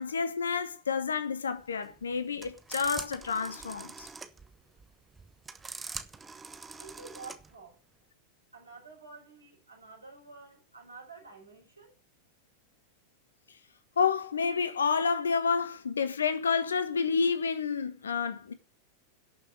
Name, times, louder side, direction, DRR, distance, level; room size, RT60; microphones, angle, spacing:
voice 1, 0.0-4.1 14.0-18.5, left 5 dB, 70° left, 1.4 m, -29 dB
sound 1, 1.6-7.5, right 4 dB, 15° right, 1.2 m, -44 dB
voice 2, 6.8-7.8 8.5-11.9, right 4 dB, 80° right, 4.7 m, -49 dB
11.5 x 6.7 x 9.5 m
figure-of-eight pair, 90°, 0 cm